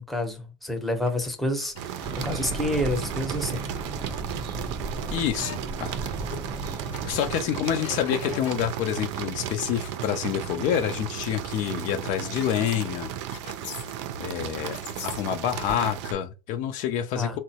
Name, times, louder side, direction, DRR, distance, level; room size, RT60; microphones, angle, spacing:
voice 1, 0.0-3.6 17.1-17.4, left 1 dB, ahead, 0.7 m, -29 dB
sound 1, 1.1-1.9 2.8-2.9 3.3-3.5 4.0-4.1 4.3-4.4 4.8-5.6 5.9-6.1 6.5-6.7 6.9-9.0 9.3-9.6 10.0-10.1 10.6-10.9 11.3-14.3 14.6-15.7, left 5 dB, 80° left, 1.0 m, -42 dB
sound 2, 1.7-16.1, right 10 dB, 85° right, 0.5 m, -35 dB
sound 3, 2.0-7.5, right 3 dB, 30° right, 0.7 m, -35 dB
voice 2, 5.1-6.1 7.0-13.1 14.2-14.8 15.0-17.4, left 10 dB, 60° left, 0.5 m, -27 dB
3.6 x 2.1 x 2.7 m
supercardioid pair, 120°, 15 cm